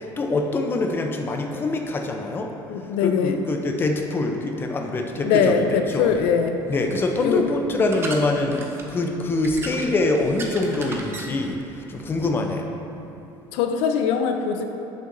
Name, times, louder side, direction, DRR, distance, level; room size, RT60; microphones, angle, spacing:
voice 1, 0.0-2.5 3.0-6.1 6.7-8.6 8.9-12.7, left 2 dB, 20° left, 3 dB, 0.5 m, -24 dB
voice 2, 2.7-3.4 5.2-6.6 7.2-7.6 13.5-14.6, left 6 dB, 75° left, 6 dB, 0.4 m, -22 dB
sound 1, 5.4-12.3, right 2 dB, 25° right, 0.6 m, -38 dB
8.2 x 6.5 x 2.6 m, 2.9 s
cardioid pair, 145°, 10 cm